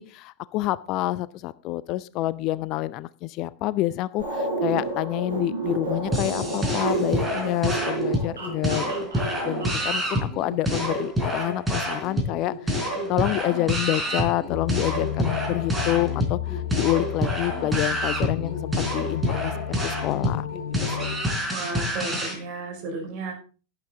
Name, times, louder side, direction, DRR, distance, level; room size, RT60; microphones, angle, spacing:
voice 1, 0.0-8.9 9.2-20.5 20.8-21.1, left 16 dB, 40° left, 18 dB, 0.4 m, -28 dB
sound 1, 4.2-10.1, right 3 dB, 70° right, 4.6 m, -30 dB
sound 2, 6.1-22.4, equal, 10° right, 3.8 m, -28 dB
sound 3, 14.5-21.2, left 10 dB, 60° left, 4.2 m, -32 dB
voice 2, 21.5-23.3, right 3 dB, 45° right, 2 dB, 5.2 m, -33 dB
11.5 x 11.0 x 3.7 m, 0.36 s
figure-of-eight pair, 90°, 0 cm